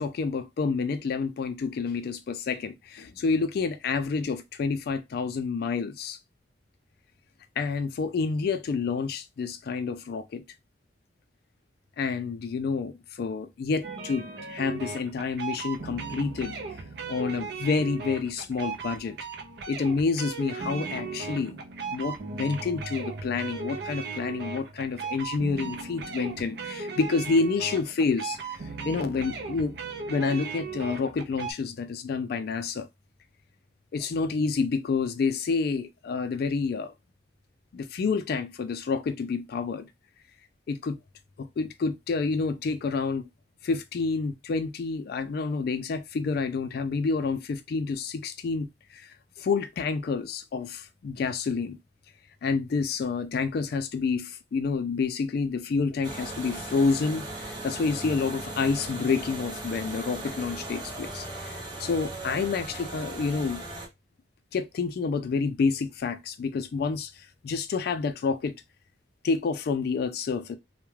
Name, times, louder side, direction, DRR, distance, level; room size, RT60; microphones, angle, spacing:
voice 1, 0.0-6.2 7.6-10.4 12.0-16.6 17.1-19.2 19.7-21.6 21.9-29.7 30.1-32.9 33.9-36.9 37.7-39.9 40.7-41.0 41.4-43.3 43.6-51.8 52.4-63.6 64.5-68.5 69.2-70.5, left 4 dB, 55° left, 0.3 m, -29 dB
sound 1, 13.8-31.5, right 4 dB, 65° right, 0.5 m, -37 dB
sound 2, 56.0-63.9, right 2 dB, 25° right, 1.0 m, -38 dB
2.3 x 2.1 x 3.1 m
head